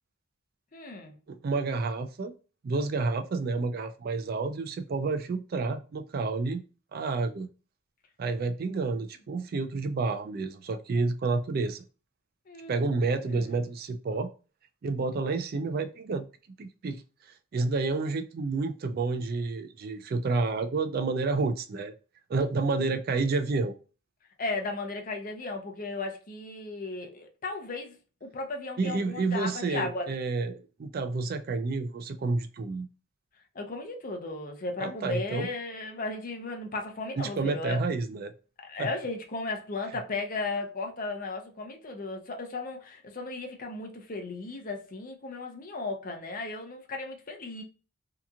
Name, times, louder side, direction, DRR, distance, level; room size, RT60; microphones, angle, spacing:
voice 1, 0.7-1.1 12.5-12.9 13.3-13.5 22.8-22.9 24.4-30.1 33.6-37.8 38.6-47.6, left 3 dB, 40° left, 0.6 m, -35 dB
voice 2, 1.3-2.3 2.6-6.6 6.9-7.5 8.2-11.8 12.7-14.3 14.8-16.3 16.6-17.0 17.5-21.9 22.3-23.7 28.8-32.9 34.8-35.5 37.2-38.3 38.8-38.9, right 3 dB, 45° right, 0.3 m, -29 dB
2.8 x 2.4 x 2.3 m
head